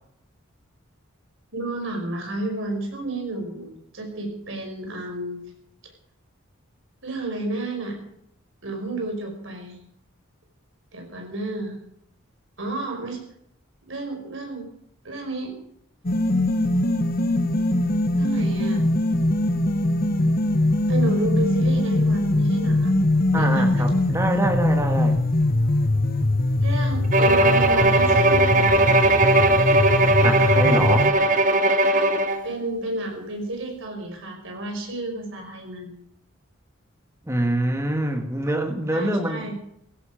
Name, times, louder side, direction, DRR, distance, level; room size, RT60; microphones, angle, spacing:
voice 1, 1.5-5.4 7.0-8.0 8.6-9.8 10.9-11.8 12.6-13.2 13.8-14.7 15.0-15.6 18.2-18.9 20.9-22.9 23.3-23.8 26.6-29.0 31.9-32.2 32.4-35.9 38.9-39.5, right 2 dB, 65° right, 3 dB, 5.7 m, -31 dB
sound 1, 16.0-31.1, left 1 dB, 45° left, 1.2 m, -22 dB
voice 2, 23.3-25.2 30.2-31.1 37.2-39.5, right 1 dB, 15° right, 5 dB, 1.8 m, -25 dB
Bowed string instrument, 27.1-32.5, right 2 dB, 40° right, 1.3 m, -18 dB
16.5 x 16.0 x 5.1 m, 0.71 s
head